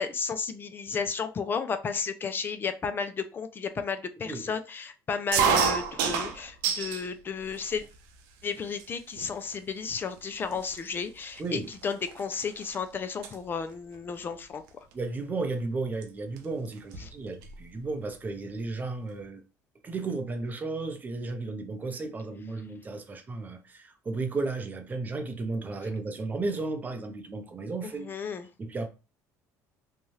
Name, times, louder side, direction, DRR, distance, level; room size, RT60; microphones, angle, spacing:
voice 1, 0.0-7.8 8.4-14.6 17.0-17.1 27.8-28.5, left 6 dB, 30° left, 0.4 m, -33 dB
sound 1, 5.3-7.1 7.5-8.1 8.8-8.9 9.2-9.5 10.2-10.3 10.5-12.8 13.0-13.3 14.7-14.9 16.0-16.1 16.4-16.5 16.7-17.6, right 7 dB, 80° right, 0.5 m, -29 dB
voice 2, 11.4-11.7 14.9-19.4 19.8-28.1 28.6-28.9, right 3 dB, 25° right, 0.7 m, -34 dB
2.7 x 2.3 x 3.1 m
cardioid pair, 110°, 7 cm